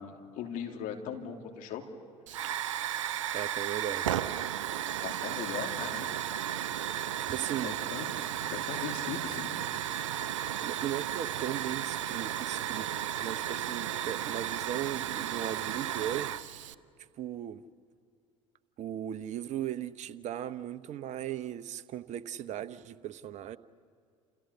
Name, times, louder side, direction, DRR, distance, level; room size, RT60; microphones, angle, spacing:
voice 1, 0.0-1.9 5.0-6.1 7.6-8.1 8.5-9.5 12.4-12.5, left 8 dB, 55° left, 3 dB, 3.0 m, -39 dB
Hiss / Fire, 2.3-16.7, right 11 dB, 75° right, 0.7 m, -34 dB
voice 2, 3.3-4.2 7.0-7.7 10.6-12.9 13.2-16.4 17.2-17.6 18.8-23.6, right 11 dB, 45° right, 14 dB, 1.0 m, -37 dB
29.5 x 28.5 x 7.0 m, 2.3 s
figure-of-eight pair, 65°, 16 cm